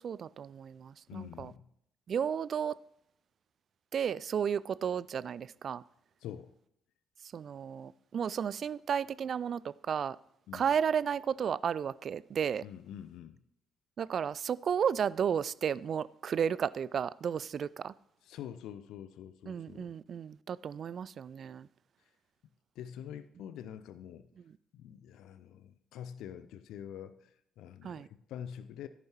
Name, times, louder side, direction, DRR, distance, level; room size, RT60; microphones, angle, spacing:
voice 1, 0.0-1.5 2.1-2.8 3.9-5.8 7.3-10.2 10.5-12.6 14.0-17.9 19.5-21.7 27.8-28.1, right 7 dB, 45° right, 0.3 m, -33 dB
voice 2, 1.1-1.6 6.2-6.5 10.5-10.7 12.6-13.4 18.2-19.9 22.8-24.3 24.7-27.3 27.6-28.9, left 9 dB, 60° left, 0.5 m, -45 dB
13.5 x 10.5 x 3.0 m
figure-of-eight pair, 45°, 0 cm